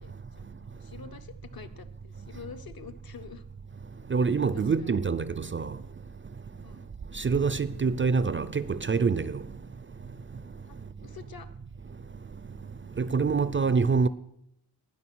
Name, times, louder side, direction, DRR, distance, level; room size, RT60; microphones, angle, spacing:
voice 1, 0.0-3.5 4.5-4.9 6.6-6.9 10.7-11.5, left 7 dB, 65° left, 1.0 m, -47 dB
voice 2, 4.1-5.7 7.2-9.4 13.0-14.1, right 5 dB, 30° right, 0.4 m, -25 dB
18.5 x 6.4 x 6.1 m
wide cardioid pair, 135°, 40 cm